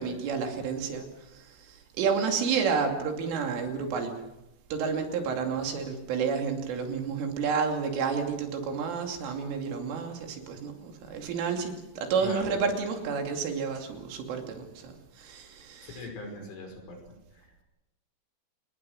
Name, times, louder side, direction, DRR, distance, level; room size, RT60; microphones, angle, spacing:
voice 1, 0.0-4.1 4.7-16.1, right 5 dB, 75° right, 4 dB, 5.2 m, -30 dB
voice 2, 12.2-12.5 15.8-17.0 17.3-17.6, left 3 dB, 75° left, 3 dB, 7.9 m, -41 dB
27.5 x 21.0 x 6.5 m, 0.95 s
omnidirectional pair, 5.7 m